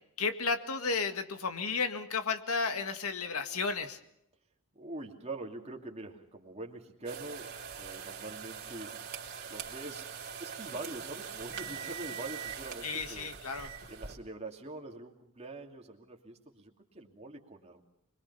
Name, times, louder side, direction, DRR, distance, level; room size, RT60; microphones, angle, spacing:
voice 1, 0.2-4.0 12.8-13.7, left 4 dB, 90° left, 8 dB, 2.0 m, -33 dB
voice 2, 4.7-9.1 9.5-10.1 10.4-13.3 13.9-17.8, right 2 dB, 30° right, 2 dB, 2.7 m, -44 dB
sound 1, 7.1-14.2, right 7 dB, 50° right, 3.2 m, -42 dB
25.5 x 22.0 x 5.6 m, 0.79 s
head